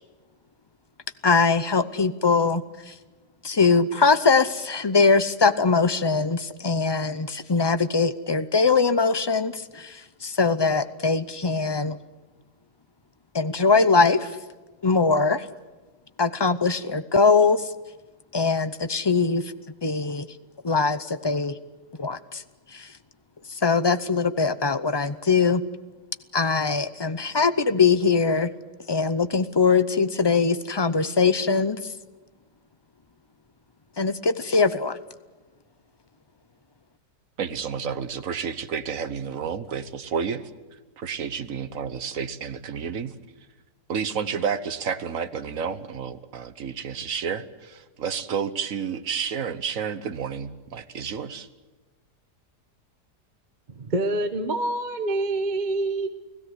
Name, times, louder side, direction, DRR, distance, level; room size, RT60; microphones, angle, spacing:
voice 1, 1.2-2.9 3.4-12.0 13.3-14.4 14.8-15.5 16.2-17.7 18.3-19.5 19.8-20.3 20.6-21.6 22.0-22.4 22.7-22.9 23.5-25.6 26.3-28.5 28.9-31.9 34.0-35.0, left 4 dB, 40° left, 13 dB, 0.3 m, -22 dB
voice 2, 37.4-40.4 41.0-43.1 43.9-51.5, right 7 dB, 55° right, 12 dB, 1.5 m, -30 dB
voice 3, 53.8-56.1, right 2 dB, 30° right, 7 dB, 1.2 m, -26 dB
29.5 x 17.5 x 8.1 m, 1.2 s
omnidirectional pair, 1.7 m